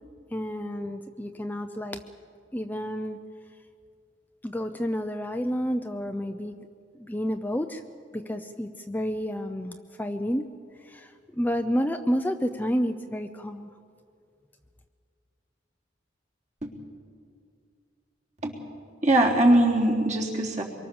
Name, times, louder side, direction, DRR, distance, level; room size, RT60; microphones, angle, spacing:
voice 1, 0.3-2.0 2.5-3.2 4.4-6.5 7.0-7.8 8.1-10.5 10.9-13.7, equal, 10° left, 6 dB, 0.6 m, -30 dB
voice 2, 19.0-20.6, right 1 dB, 40° right, -1 dB, 3.6 m, -21 dB
25.0 x 23.0 x 7.1 m, 2.4 s
head